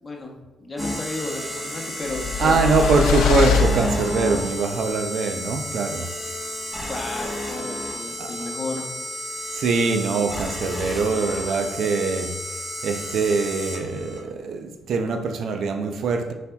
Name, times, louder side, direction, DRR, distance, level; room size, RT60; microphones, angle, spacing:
voice 1, 0.0-3.0 6.9-8.9, left 2 dB, 25° left, 0 dB, 0.9 m, -32 dB
sound 1, 0.8-14.2, left 1 dB, 5° right, 1.2 m, -31 dB
sound 2, 2.1-4.5, left 6 dB, 90° left, 0.4 m, -23 dB
voice 2, 2.4-6.1 8.2-8.3 9.5-12.3 12.8-16.3, right 4 dB, 70° right, 6 dB, 0.5 m, -23 dB
4.8 x 4.2 x 2.3 m, 1.1 s
cardioid pair, 90°, 0 cm